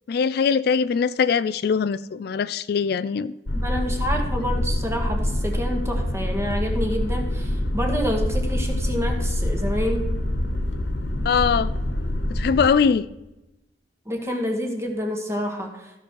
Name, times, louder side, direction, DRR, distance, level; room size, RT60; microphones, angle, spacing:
voice 1, 0.1-3.3 11.3-11.7 12.3-13.1, left 6 dB, 60° left, 15 dB, 0.3 m, -21 dB
sound 1, 3.5-12.7, left 1 dB, 85° left, 1.3 m, -25 dB
voice 2, 3.5-10.1 14.0-15.9, equal, 15° right, 3 dB, 1.7 m, -28 dB
15.0 x 6.1 x 4.6 m, 0.97 s
head